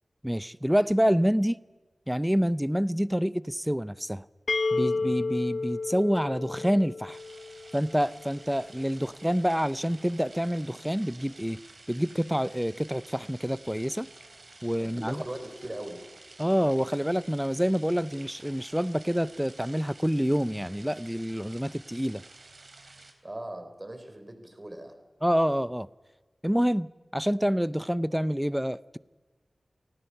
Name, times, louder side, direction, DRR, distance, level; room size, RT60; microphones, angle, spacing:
voice 1, 0.2-1.6 2.1-4.2 4.7-7.2 7.7-11.6 11.9-14.1 14.6-15.2 16.4-22.2 25.2-25.9 26.4-29.0, equal, 5° right, 0.6 m, -27 dB
sound 1, 4.5-8.2, left 3 dB, 80° left, 0.6 m, -31 dB
sound 2, 7.1-23.1, right 3 dB, 60° right, 3.5 m, -51 dB
voice 2, 14.8-16.1 23.2-25.0, right 1 dB, 25° right, 3.9 m, -39 dB
29.0 x 19.0 x 5.7 m
wide cardioid pair, 90°, 0 cm